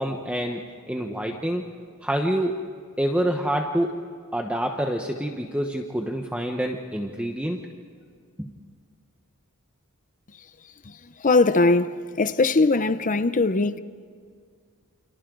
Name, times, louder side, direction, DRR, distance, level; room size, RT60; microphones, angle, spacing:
voice 1, 0.0-1.7 2.0-2.6 3.0-4.0 4.3-7.6 8.4-8.5, right 1 dB, 5° right, 1.1 m, -27 dB
voice 2, 11.2-13.8, left 3 dB, 35° left, 0.7 m, -20 dB
29.5 x 28.0 x 3.9 m
head